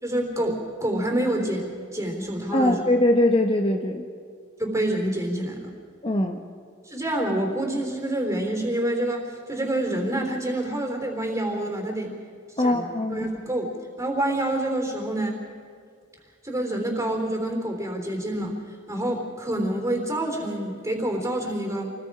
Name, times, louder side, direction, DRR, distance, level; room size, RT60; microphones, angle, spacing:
voice 1, 0.0-2.8 4.6-5.7 6.9-12.1 12.6-13.7 14.0-15.4 16.4-18.6 18.9-21.9, right 1 dB, 15° right, 1 dB, 3.6 m, -27 dB
voice 2, 2.5-4.1 6.0-6.4 12.6-13.3, left 1 dB, 25° left, 3 dB, 1.0 m, -22 dB
28.0 x 20.0 x 4.9 m, 2.2 s
head